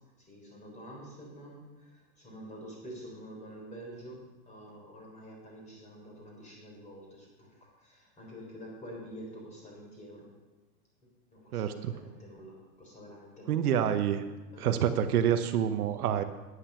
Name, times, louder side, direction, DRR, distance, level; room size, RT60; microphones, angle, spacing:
voice 1, 0.2-10.3 11.3-13.6 14.5-15.2, equal, 15° left, -1 dB, 4.1 m, -48 dB
voice 2, 11.5-11.9 13.5-14.3 14.6-16.2, right 9 dB, 75° right, 9 dB, 1.0 m, -27 dB
9.9 x 9.7 x 5.8 m, 1.2 s
supercardioid pair, 145°, 45 cm